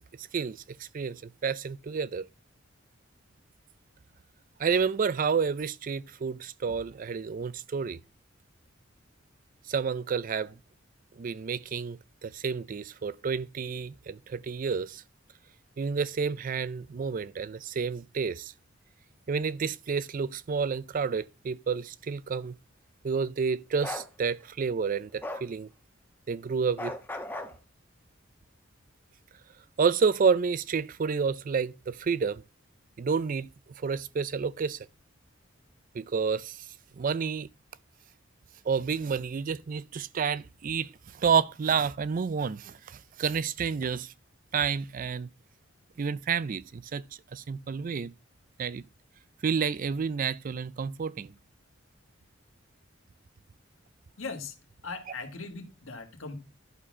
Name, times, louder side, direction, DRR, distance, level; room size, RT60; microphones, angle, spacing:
voice 1, 0.2-2.3 4.6-8.0 9.7-10.5 11.2-15.0 15.8-18.5 19.3-22.6 23.0-25.7 26.3-26.9 29.8-32.4 33.0-33.5 33.8-34.8 35.9-36.7 36.9-37.5 38.7-44.1 44.5-45.3 46.0-47.0 47.3-48.1 48.6-48.8 49.4-51.3, right 6 dB, 45° right, 0.4 m, -30 dB
Bark, 23.8-24.1 25.2-25.5 26.8-27.5, left 1 dB, 10° left, 1.0 m, -36 dB
voice 2, 54.2-54.5 54.8-56.4, left 4 dB, 85° left, 1.8 m, -39 dB
11.0 x 4.2 x 6.1 m
head